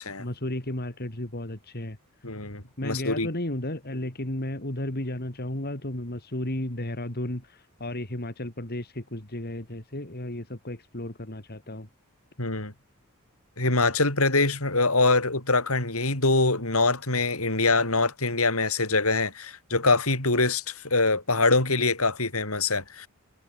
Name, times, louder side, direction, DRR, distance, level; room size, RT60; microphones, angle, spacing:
voice 1, 0.2-2.0 2.8-11.9, left 1 dB, 45° left, 3.4 m, -33 dB
voice 2, 2.2-3.3 12.4-12.7 13.6-23.1, left 3 dB, 70° left, 7.2 m, -24 dB
head